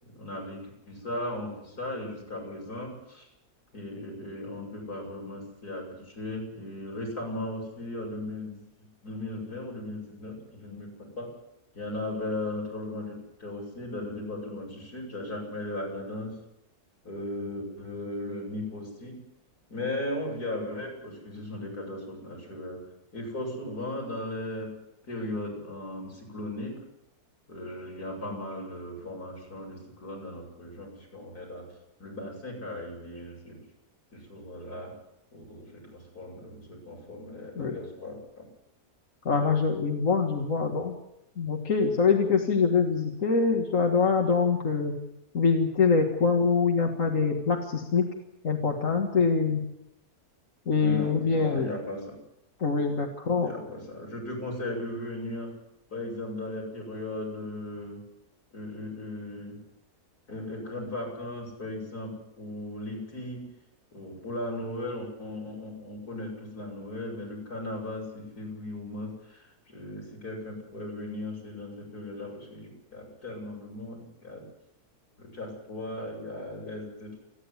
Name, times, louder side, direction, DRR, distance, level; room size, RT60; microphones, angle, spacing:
voice 1, 0.0-3.3 3.7-11.3 11.7-16.4 17.0-19.2 19.7-22.8 23.1-24.8 25.1-26.8 27.5-31.7 32.0-33.6 34.1-35.0 35.3-38.5 50.8-52.2 53.3-55.6 55.9-58.0 58.5-59.6 60.3-63.5 63.9-74.5 75.2-77.2, left 1 dB, 75° left, -1 dB, 7.5 m, -37 dB
voice 2, 39.3-41.0 41.4-44.9 45.3-48.1 48.4-49.6 50.7-51.7 52.6-53.5, left 5 dB, 55° left, 2 dB, 2.1 m, -24 dB
28.0 x 10.5 x 9.8 m, 0.87 s
omnidirectional pair, 1.6 m